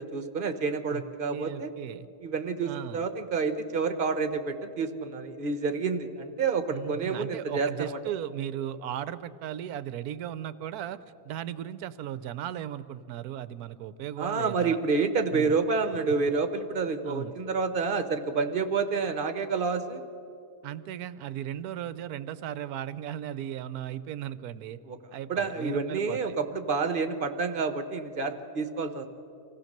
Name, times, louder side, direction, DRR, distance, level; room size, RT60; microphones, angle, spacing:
voice 1, 0.0-1.7 2.2-8.0 14.2-20.0 24.9-25.0 25.3-29.1, right 4 dB, 35° right, 9 dB, 1.0 m, -29 dB
voice 2, 1.3-2.1 2.6-3.1 6.7-11.0 11.2-14.8 15.3-15.6 16.2-16.3 17.0-17.3 20.6-24.8 25.1-26.4, right 11 dB, 70° right, 14 dB, 1.0 m, -36 dB
25.0 x 16.0 x 6.6 m, 2.7 s
omnidirectional pair, 1.9 m